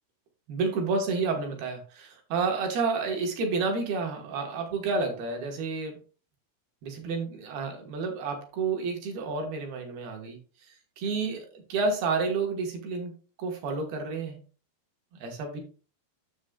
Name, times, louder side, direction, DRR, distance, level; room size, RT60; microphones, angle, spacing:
voice 1, 0.5-6.0 6.8-10.4 11.0-13.1 13.4-14.4 15.1-15.6, right 4 dB, 65° right, 3 dB, 2.7 m, -30 dB
10.0 x 7.2 x 2.3 m, 0.36 s
omnidirectional pair, 5.8 m